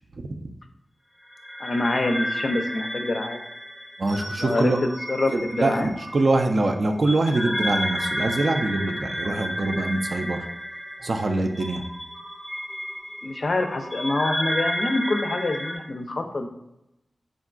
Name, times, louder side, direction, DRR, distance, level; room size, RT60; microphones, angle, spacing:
voice 1, 0.2-0.5 4.0-4.8 5.3-10.5 11.0-11.8, right 2 dB, 60° right, 5 dB, 0.3 m, -24 dB
Wind Chimes, 1.3-15.8, equal, ahead, 0.6 m, -32 dB
voice 2, 1.6-3.4 4.4-5.9 13.2-16.5, left 2 dB, 55° left, 5 dB, 0.4 m, -26 dB
3.6 x 2.2 x 2.4 m, 0.86 s
wide cardioid pair, 65°, 0 cm